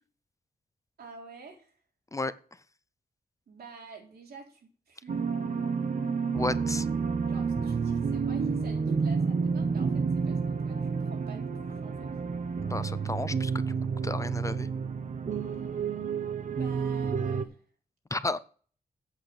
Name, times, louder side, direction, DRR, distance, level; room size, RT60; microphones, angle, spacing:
voice 1, 1.0-1.8 3.5-5.2 7.2-12.1 16.5-17.6, right 4 dB, 90° right, 1 dB, 3.8 m, -48 dB
sound 1, 5.1-17.4, right 5 dB, 55° right, 1.0 m, -30 dB
voice 2, 6.3-6.9 12.6-13.7 14.0-14.7 18.1-18.4, left 2 dB, 20° left, 14 dB, 0.6 m, -32 dB
8.4 x 7.9 x 6.6 m, 0.42 s
wide cardioid pair, 120°, 16 cm